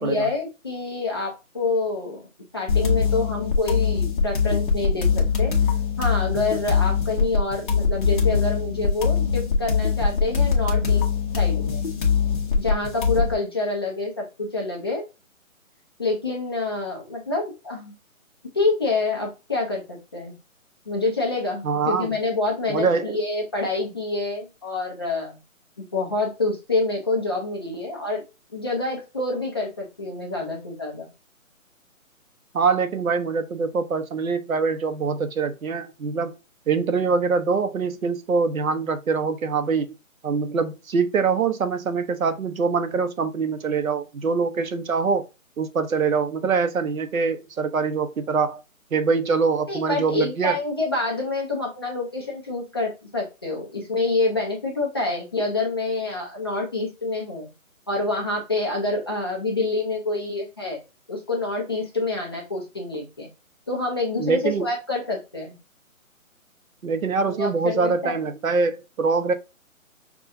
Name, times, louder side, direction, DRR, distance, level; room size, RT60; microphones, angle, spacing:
voice 1, 0.0-5.5 6.0-11.0 11.4-11.9 12.6-15.0 16.0-17.9 18.5-20.3 20.9-25.4 25.8-28.2 28.5-31.1 49.7-57.5 57.9-60.8 61.1-63.3 63.7-65.5 67.2-68.2, left 2 dB, 20° left, 0.6 m, -27 dB
sound 1, 2.7-13.3, left 6 dB, 35° left, 1.1 m, -22 dB
voice 2, 21.6-22.1 22.7-23.2 32.5-36.3 36.7-39.9 40.2-45.2 45.6-48.6 48.9-50.6 64.2-64.7 66.8-69.3, right 5 dB, 75° right, 0.9 m, -24 dB
6.0 x 2.4 x 2.5 m
hypercardioid pair, 160°, 41 cm